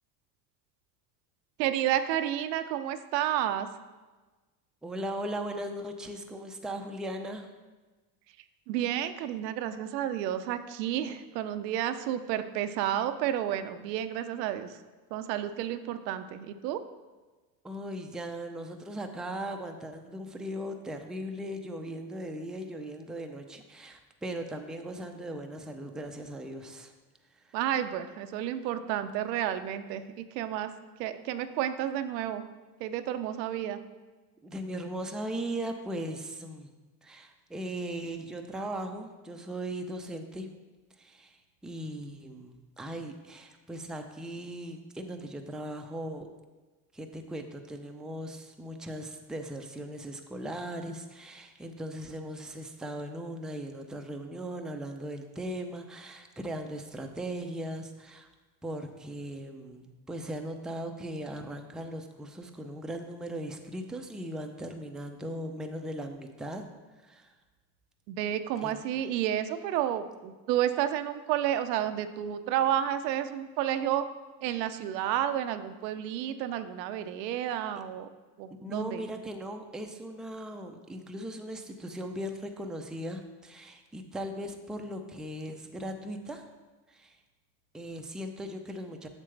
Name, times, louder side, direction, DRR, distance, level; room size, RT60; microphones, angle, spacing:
voice 1, 1.6-3.7 8.7-14.7 15.1-16.8 27.5-30.7 31.0-32.4 32.8-33.8 68.1-74.1 74.4-78.1 78.4-79.1, right 11 dB, 85° right, 10 dB, 0.7 m, -31 dB
voice 2, 4.8-7.5 17.6-26.9 27.4-27.6 34.4-36.7 37.0-40.5 41.0-46.3 46.9-58.3 58.6-66.7 67.0-67.3 68.6-68.8 78.6-86.5 86.9-87.2 87.7-89.1, right 1 dB, ahead, 4 dB, 0.5 m, -38 dB
7.4 x 6.7 x 3.3 m, 1.2 s
supercardioid pair, 100°, 48 cm